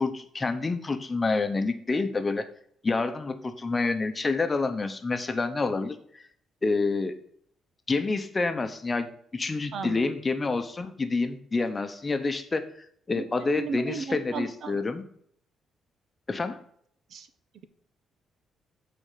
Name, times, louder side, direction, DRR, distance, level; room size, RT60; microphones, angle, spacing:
voice 1, 0.0-2.5 2.8-6.2 6.6-7.2 7.9-12.7 13.1-15.0 16.3-16.6, left 3 dB, 25° left, 8 dB, 0.8 m, -28 dB
voice 2, 9.7-10.0 13.2-13.3 13.6-14.8 17.1-17.3, right 5 dB, 65° right, 11 dB, 0.7 m, -34 dB
8.8 x 4.3 x 4.9 m, 0.65 s
cardioid pair, 90°, 0 cm